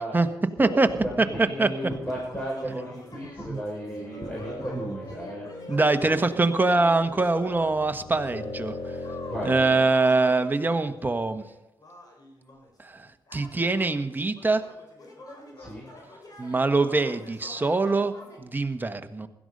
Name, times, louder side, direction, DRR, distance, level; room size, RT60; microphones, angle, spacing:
voice 1, 0.0-5.5 9.3-9.5 15.6-15.9, equal, 15° left, -4 dB, 6.0 m, -35 dB
voice 2, 0.6-0.9 1.2-1.3 1.6-1.7 2.6-2.8 3.5-3.6 4.7-4.9 5.7-8.8 9.4-11.5 12.8-13.0 13.3-14.7 16.4-18.1 18.4-19.3, right 3 dB, 20° right, 8 dB, 1.4 m, -23 dB
sound 1, 1.6-7.8 8.1-18.4, left 2 dB, 45° left, 4.5 m, -47 dB
sound 2, 3.6-9.9, left 1 dB, 80° left, 5.4 m, -39 dB
16.5 x 13.0 x 5.4 m, 0.95 s
cardioid pair, 70°, 9 cm